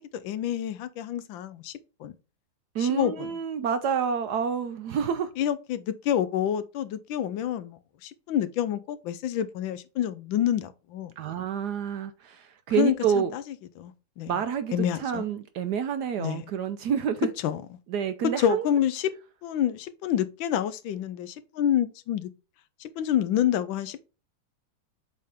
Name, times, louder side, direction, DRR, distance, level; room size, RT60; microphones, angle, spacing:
voice 1, 0.0-1.7 2.0-2.1 2.8-3.3 5.4-11.1 12.8-13.4 13.8-14.3 14.7-15.3 16.2-16.4 17.4-17.6 18.2-19.1 19.4-22.3 22.8-24.0, left 10 dB, 80° left, 1.4 m, -28 dB
voice 2, 2.7-5.3 11.2-13.3 14.3-17.3 17.9-18.7, right 7 dB, 70° right, 1.0 m, -28 dB
7.6 x 3.6 x 3.5 m
omnidirectional pair, 2.1 m